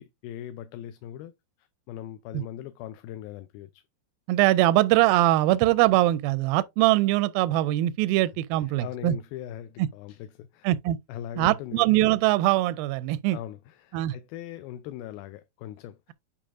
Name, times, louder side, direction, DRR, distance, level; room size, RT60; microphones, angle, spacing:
voice 1, 0.0-1.3 1.6-3.8 8.8-10.7 11.1-11.9 13.3-16.0, left 11 dB, 80° left, 2.3 m, -40 dB
voice 2, 4.3-9.2 10.6-11.0 11.4-13.4 13.9-14.1, right 16 dB, 80° right, 2.1 m, -22 dB
8.5 x 5.1 x 2.5 m
omnidirectional pair, 4.5 m